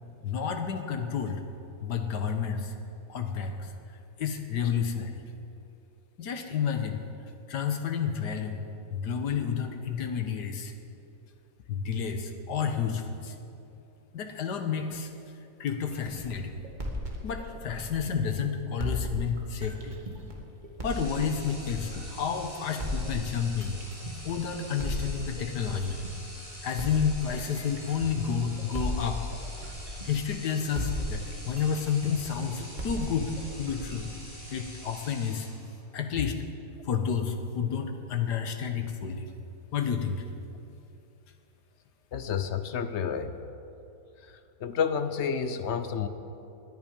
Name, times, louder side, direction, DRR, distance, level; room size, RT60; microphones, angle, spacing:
voice 1, 0.2-1.4 1.8-2.7 3.1-3.7 4.2-5.2 6.2-7.0 7.5-8.6 8.9-10.7 11.7-13.3 14.1-15.1 15.6-16.6 17.2-20.0 20.8-23.8 24.2-26.0 26.6-29.2 30.0-33.3 33.6-34.1 34.5-35.5 35.9-36.4 36.8-39.3 39.7-40.2, left 7 dB, 80° left, 6 dB, 1.7 m, -30 dB
sound 1, 15.9-18.3 18.8-22.3 22.8-26.3 26.8-30.4 30.7-34.8, equal, 30° right, 1.8 m, -36 dB
sound 2, 20.8-35.9, equal, 20° left, 3.7 m, -46 dB
voice 2, 42.1-43.4 44.6-46.1, left 7 dB, 55° left, 10 dB, 0.8 m, -30 dB
19.0 x 10.5 x 5.3 m, 2.8 s
omnidirectional pair, 1.8 m